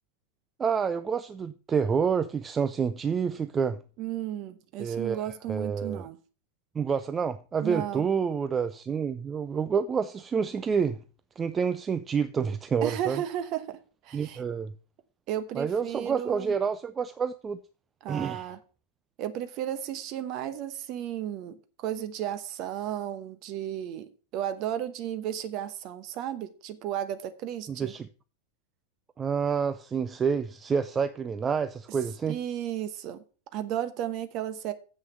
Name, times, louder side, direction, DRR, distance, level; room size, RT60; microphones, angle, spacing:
voice 1, 0.6-3.8 4.8-6.1 6.8-11.0 11.4-13.2 14.1-14.7 15.5-17.6 18.1-18.5 27.7-28.1 29.2-32.4, right 6 dB, 20° right, 0.5 m, -28 dB
voice 2, 4.0-6.2 7.6-8.1 12.8-13.8 14.0-14.4 15.3-16.5 18.0-18.6 19.2-27.9 32.3-33.2 33.5-34.7, right 11 dB, 40° right, 1.1 m, -34 dB
7.7 x 6.4 x 6.7 m
figure-of-eight pair, 90°, 0 cm